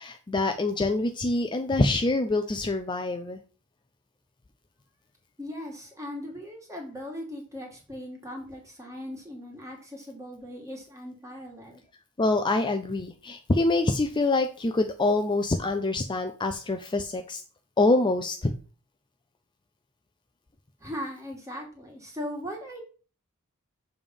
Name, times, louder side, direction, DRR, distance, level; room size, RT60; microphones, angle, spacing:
voice 1, 0.0-3.4 12.2-17.4 17.8-18.5, left 2 dB, 20° left, 7 dB, 0.5 m, -25 dB
voice 2, 5.4-11.8 20.8-22.8, equal, 15° right, 0 dB, 1.9 m, -39 dB
7.0 x 3.4 x 5.3 m, 0.38 s
head